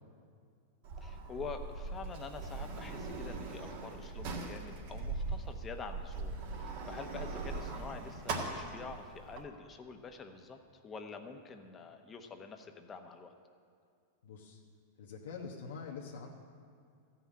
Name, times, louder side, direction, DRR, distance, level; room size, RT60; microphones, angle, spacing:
Sliding door, 0.8-9.4, right 3 dB, 60° right, 1.8 m, -40 dB
voice 1, 1.0-10.6 10.8-13.3, left 5 dB, 25° left, 6 dB, 1.0 m, -46 dB
voice 2, 14.2-14.6 15.0-16.3, left 5 dB, 85° left, -1 dB, 1.2 m, -45 dB
13.5 x 5.9 x 8.5 m, 2.3 s
hypercardioid pair, 120°, 0 cm